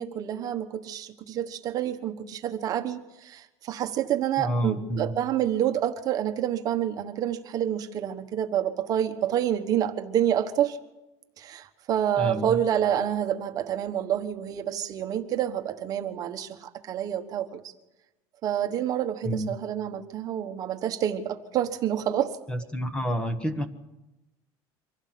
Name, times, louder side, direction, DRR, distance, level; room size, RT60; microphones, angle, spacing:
voice 1, 0.0-10.8 11.4-17.6 18.4-22.4, right 10 dB, 40° right, 7 dB, 1.2 m, -28 dB
voice 2, 4.4-5.1 12.2-12.6 19.2-19.5 22.5-23.7, equal, 10° left, 9 dB, 1.3 m, -29 dB
24.5 x 16.0 x 7.6 m, 0.98 s
cardioid pair, 160°, 10 cm